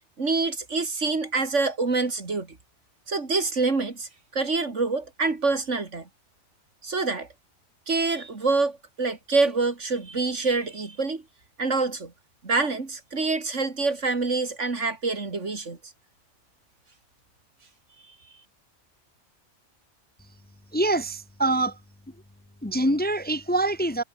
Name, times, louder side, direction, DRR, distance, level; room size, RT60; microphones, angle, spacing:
voice 1, 0.2-2.6 3.1-6.1 6.8-7.3 7.9-11.2 11.6-12.1 12.4-15.8, right 3 dB, 90° right, 3.2 m, -26 dB
voice 2, 20.7-21.8 22.6-24.0, right 2 dB, 10° left, 0.6 m, -24 dB
omnidirectional pair, 1.2 m